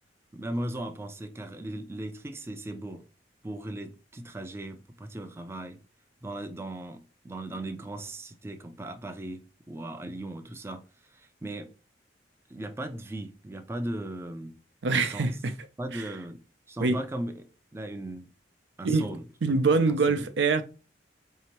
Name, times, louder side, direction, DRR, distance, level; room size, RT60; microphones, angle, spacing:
voice 1, 0.3-3.1 3.4-5.8 6.2-11.7 12.5-14.6 15.0-15.4 15.8-16.4 16.7-18.3 18.8-20.3, right 1 dB, 15° right, 0.3 m, -38 dB
voice 2, 14.8-15.5 16.8-17.0 18.8-19.0 19.4-20.6, right 4 dB, 75° right, 0.5 m, -24 dB
4.3 x 2.8 x 2.9 m
head